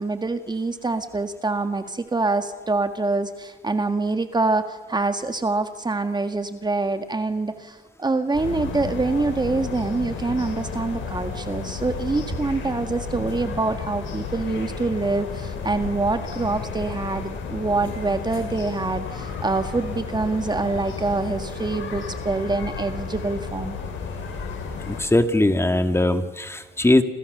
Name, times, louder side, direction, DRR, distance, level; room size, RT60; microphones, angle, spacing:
voice 1, 0.0-23.8, right 3 dB, 20° right, 8 dB, 1.7 m, -25 dB
sound 1, 8.3-25.0, left 5 dB, 75° left, 6.8 m, -32 dB
voice 2, 24.9-27.0, left 1 dB, 15° left, 8 dB, 2.2 m, -20 dB
29.5 x 28.0 x 6.8 m, 1.3 s
cardioid pair, 90°, 20 cm